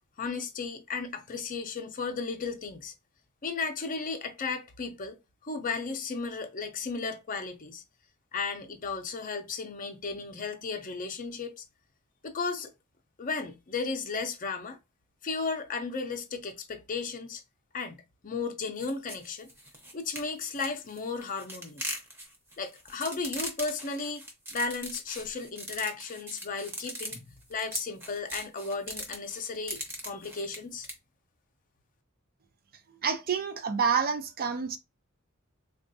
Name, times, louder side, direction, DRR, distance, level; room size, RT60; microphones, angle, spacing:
voice 1, 0.2-2.9 3.4-5.2 5.4-7.8 8.3-11.6 12.2-12.7 13.2-14.8 15.2-17.4 17.7-19.5 19.9-22.0 22.6-24.2 24.5-30.9, left 4 dB, 40° left, 0.6 m, -35 dB
sound 1, 18.8-30.9, right 1 dB, 10° right, 0.8 m, -40 dB
voice 2, 33.0-34.8, right 6 dB, 45° right, 0.5 m, -28 dB
3.6 x 2.3 x 2.6 m
head